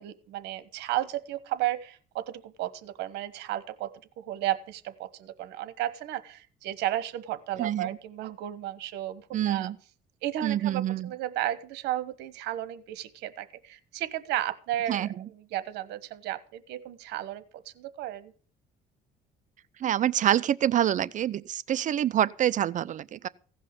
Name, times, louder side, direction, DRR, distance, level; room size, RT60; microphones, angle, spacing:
voice 1, 0.0-3.9 4.2-9.7 10.2-18.3, right 13 dB, 90° right, 1.2 m, -33 dB
voice 2, 7.6-8.0 9.3-9.8 10.4-11.1 14.9-15.3 19.8-23.3, right 11 dB, 50° right, 0.6 m, -26 dB
16.0 x 5.6 x 8.1 m
cardioid pair, 110°, 17 cm